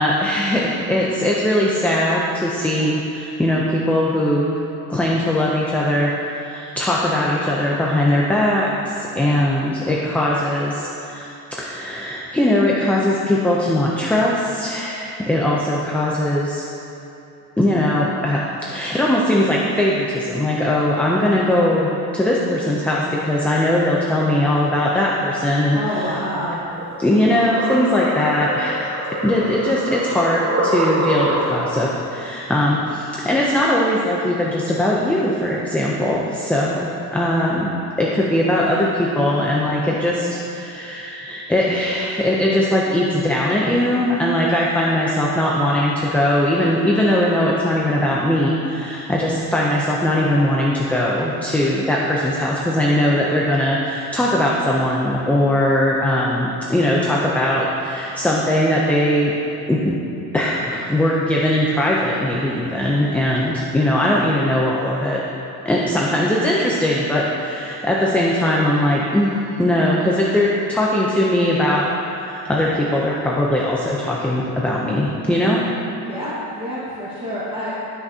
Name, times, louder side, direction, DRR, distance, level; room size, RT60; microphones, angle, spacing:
voice 1, 0.0-4.6 4.9-11.3 11.6-16.6 17.6-26.2 27.0-28.9 29.2-59.3 59.7-59.9 60.3-65.2 65.6-69.3 69.6-75.6, left 1 dB, 5° left, -4 dB, 0.3 m, -20 dB
voice 2, 25.7-26.6 76.0-77.7, equal, 15° right, -12 dB, 1.4 m, -27 dB
sound 1, 26.7-31.8, right 2 dB, 40° right, 1.2 m, -25 dB
13.5 x 6.0 x 2.7 m, 2.8 s
cardioid pair, 180°, 38 cm